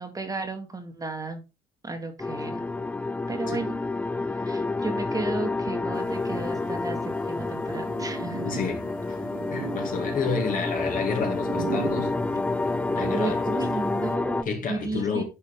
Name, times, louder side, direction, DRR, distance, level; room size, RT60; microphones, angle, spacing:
voice 1, 0.0-1.4 1.8-2.6 3.3-3.7 4.4-8.7 12.9-15.2, right 3 dB, 20° right, 1.6 m, -33 dB
sound 1, 2.2-14.4, left 3 dB, 10° left, 0.3 m, -29 dB
sound 2, 5.9-14.2, right 8 dB, 55° right, 1.2 m, -39 dB
voice 2, 8.4-8.8 9.5-12.1 12.9-13.4 14.5-15.2, left 5 dB, 55° left, 2.6 m, -30 dB
10.0 x 4.8 x 3.8 m
cardioid pair, 110°, 17 cm